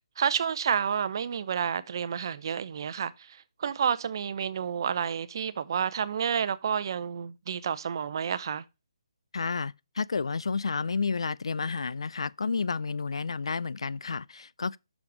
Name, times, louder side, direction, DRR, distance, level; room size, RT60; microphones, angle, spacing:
voice 1, 0.2-8.6, right 7 dB, 50° right, 0.7 m, -30 dB
voice 2, 9.3-14.8, left 5 dB, 75° left, 0.4 m, -31 dB
6.4 x 5.8 x 5.2 m
hypercardioid pair, 150°, 3 cm